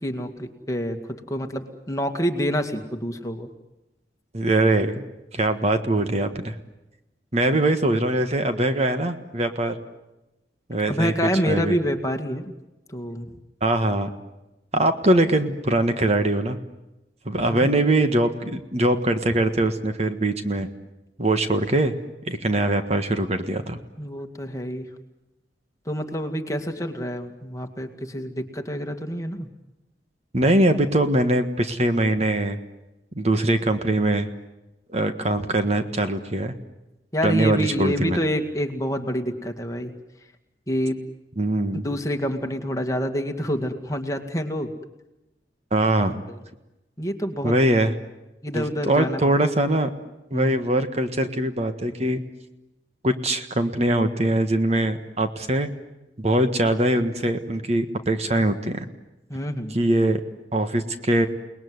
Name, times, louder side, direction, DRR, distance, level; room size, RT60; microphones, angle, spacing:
voice 1, 0.0-3.5 10.9-12.6 12.9-13.3 17.5-17.7 24.0-24.9 25.9-29.5 37.1-39.9 40.7-41.0 41.8-44.7 46.3-46.4 47.0-47.6 48.4-49.4 50.3-50.5 59.3-59.8, equal, 20° left, 4 dB, 2.1 m, -27 dB
voice 2, 4.3-5.0 5.3-6.6 7.3-9.8 10.7-11.1 11.5-11.7 13.6-14.1 14.7-16.6 17.2-20.7 21.2-21.9 22.3-23.8 30.3-32.6 33.1-34.3 34.9-36.5 37.2-38.2 41.4-41.8 45.7-46.2 47.4-47.9 48.5-49.9 50.3-52.2 53.0-55.7 56.2-58.8 59.7-60.2 60.5-61.3, right 1 dB, 35° right, 8 dB, 1.5 m, -22 dB
29.5 x 20.0 x 9.6 m, 0.99 s
head